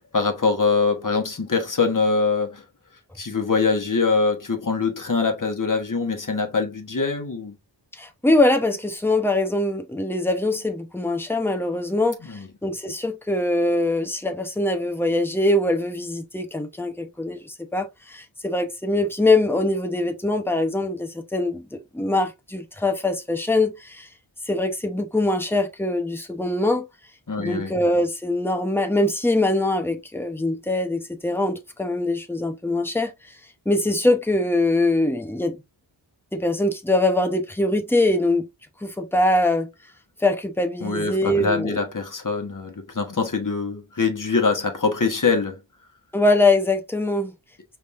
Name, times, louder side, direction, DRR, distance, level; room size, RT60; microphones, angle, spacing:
voice 1, 0.1-2.6 3.2-7.5 12.2-12.5 27.3-27.7 40.8-45.6, left 4 dB, 40° left, 1.3 m, -23 dB
voice 2, 7.9-24.1 24.5-26.8 27.4-33.1 33.7-35.6 36.3-38.5 38.8-39.7 40.2-41.8 46.1-47.3, left 2 dB, 5° left, 0.9 m, -23 dB
5.1 x 3.5 x 2.6 m
wide cardioid pair, 70°, 46 cm